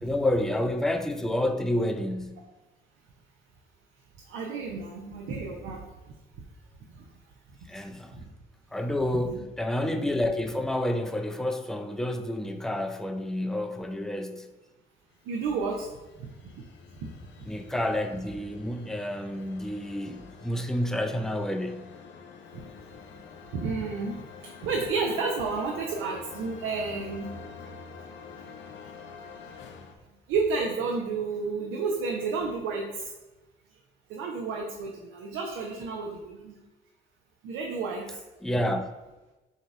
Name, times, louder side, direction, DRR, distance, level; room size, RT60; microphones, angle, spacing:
voice 1, 0.0-2.5 7.7-8.2 8.7-14.5 17.5-21.9 38.4-38.9, left 1 dB, ahead, 0.4 m, -29 dB
voice 2, 4.3-5.8 6.9-7.0 8.1-8.2 9.3-9.4 15.3-15.9 16.2-16.3 17.0-17.1 22.5-22.6 23.5-24.2 24.5-27.3 30.3-33.1 34.1-36.6 37.4-38.2, right 4 dB, 90° right, 0.6 m, -31 dB
sound 1, 15.2-29.9, left 5 dB, 65° left, 0.6 m, -47 dB
4.0 x 2.8 x 4.7 m
cardioid pair, 90°, 20 cm